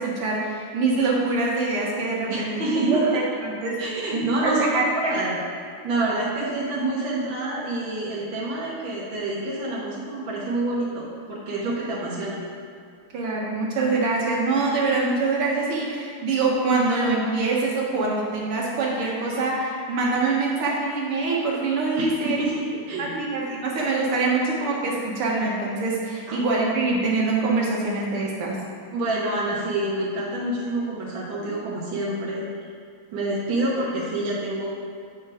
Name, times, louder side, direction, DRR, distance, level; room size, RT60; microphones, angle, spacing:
voice 1, 0.0-3.8 4.1-5.2 13.1-22.4 23.0-28.6, right 3 dB, 85° right, -3 dB, 2.2 m, -24 dB
voice 2, 2.3-3.0 3.8-5.4 5.8-12.4 22.0-23.2 26.3-26.4 28.9-32.4 33.1-34.7, right 2 dB, 65° right, -6 dB, 1.9 m, -27 dB
8.9 x 4.5 x 4.9 m, 2.4 s
omnidirectional pair, 2.4 m